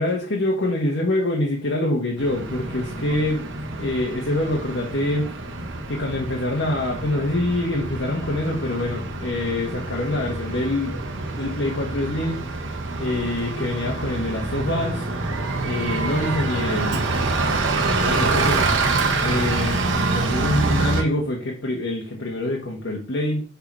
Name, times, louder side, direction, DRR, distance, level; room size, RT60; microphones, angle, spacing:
voice 1, 0.0-3.4 3.8-5.3 5.9-11.0 11.3-12.4 13.0-15.1 15.6-17.0 18.0-23.4, left 1 dB, 70° left, -2 dB, 1.5 m, -25 dB
Bus, 2.2-21.0, right 3 dB, 80° right, 1.4 m, -26 dB
6.7 x 4.7 x 4.8 m, 0.39 s
head